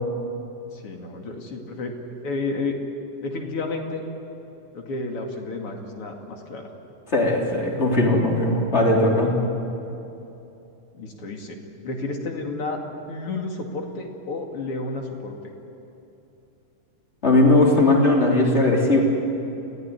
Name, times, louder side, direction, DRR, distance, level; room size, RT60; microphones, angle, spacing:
voice 1, 0.7-1.9 2.2-2.8 3.2-4.0 4.7-6.7 10.9-11.6 11.8-12.8 13.1-15.5, left 3 dB, 45° left, 2 dB, 3.1 m, -31 dB
voice 2, 7.1-9.3 17.2-19.0, left 2 dB, 20° left, -1 dB, 3.6 m, -18 dB
27.5 x 17.0 x 9.7 m, 2.9 s
omnidirectional pair, 3.7 m